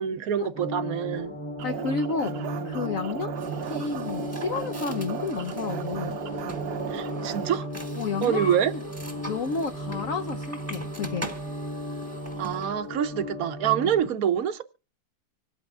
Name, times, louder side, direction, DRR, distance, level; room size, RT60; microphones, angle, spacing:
voice 1, 0.0-1.4 6.9-7.7 8.2-8.7 12.4-14.6, right 9 dB, 60° right, 1.1 m, -26 dB
sound 1, 0.5-14.0, equal, 40° left, 2.2 m, -36 dB
voice 2, 1.6-2.3 2.6-3.4 3.6-6.2 8.0-8.4 8.7-8.8 9.3-11.3, left 5 dB, 55° left, 1.0 m, -31 dB
sound 2, 1.6-7.5, right 10 dB, 85° right, 1.7 m, -36 dB
sound 3, 3.3-12.8, equal, 10° right, 1.2 m, -40 dB
25.5 x 8.8 x 2.4 m
omnidirectional pair, 2.0 m